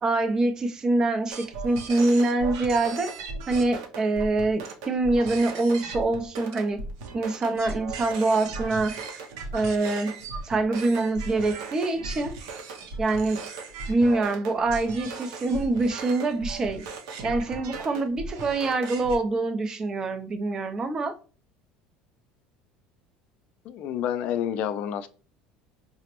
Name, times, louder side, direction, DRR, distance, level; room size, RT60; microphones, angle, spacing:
voice 1, 0.0-3.1 3.5-6.8 7.1-8.9 9.5-10.1 10.4-12.3 13.0-13.4 13.9-16.8 17.2-21.1, right 2 dB, 25° right, 0.4 m, -25 dB
sound 1, 1.3-19.2, right 3 dB, 85° right, 0.6 m, -37 dB
voice 2, 23.7-25.1, left 9 dB, 55° left, 0.4 m, -29 dB
4.9 x 2.0 x 2.9 m
cardioid pair, 135°, 3 cm